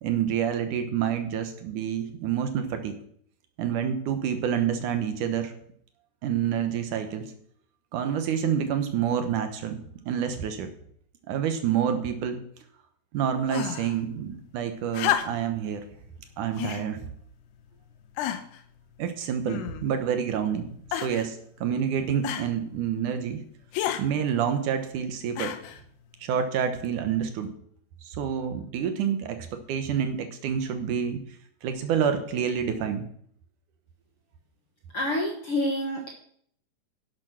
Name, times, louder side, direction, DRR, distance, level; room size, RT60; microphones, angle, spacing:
voice 1, 0.0-3.0 3.6-5.6 6.2-7.3 7.9-9.8 10.1-10.7 11.3-12.4 13.1-15.9 16.4-17.1 19.0-23.4 24.0-25.6 26.2-27.5 28.0-33.1, right 8 dB, 70° right, 8 dB, 2.0 m, -28 dB
sound 1, 13.5-14.0 14.9-15.6 16.6-16.9 17.6-17.7 18.2-18.6 19.5-20.0 20.9-21.3 22.2-22.5 23.7-24.1 25.4-25.8 26.9-27.0, left 11 dB, 80° left, 2.9 m, -30 dB
voice 2, 34.9-36.1, left 1 dB, 60° left, 1 dB, 1.4 m, -27 dB
11.5 x 8.9 x 6.1 m, 0.64 s
omnidirectional pair, 4.9 m